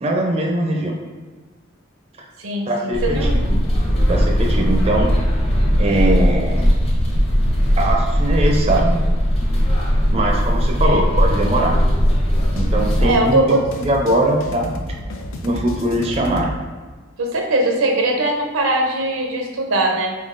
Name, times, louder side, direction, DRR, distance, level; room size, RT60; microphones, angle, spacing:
voice 1, 0.0-1.0 2.7-3.6 4.1-5.1 5.8-6.7 7.8-9.0 10.1-11.8 12.5-14.7 15.4-16.6, right 1 dB, 30° right, 0 dB, 0.4 m, -21 dB
voice 2, 2.4-3.4 10.8-11.0 13.0-13.6 17.2-20.1, right 2 dB, 90° right, 2 dB, 0.6 m, -20 dB
sound 1, 2.9-13.1, equal, 30° left, 0.8 m, -18 dB
sound 2, 10.9-16.6, left 1 dB, 85° left, 0.5 m, -33 dB
4.2 x 3.7 x 2.5 m, 1.4 s
head